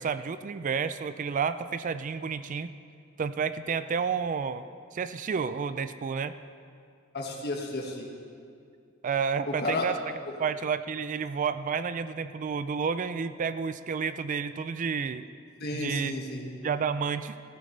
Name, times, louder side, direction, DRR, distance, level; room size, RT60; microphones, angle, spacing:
voice 1, 0.0-2.7 3.2-4.6 4.9-6.3 9.0-10.0 10.4-15.3 15.7-16.1 16.6-17.6, right 6 dB, 40° right, 12 dB, 0.4 m, -30 dB
voice 2, 7.1-8.1 9.5-9.9 10.3-10.4 15.6-16.5, left 2 dB, 55° left, 0 dB, 1.8 m, -32 dB
14.5 x 14.5 x 3.3 m, 2.3 s
head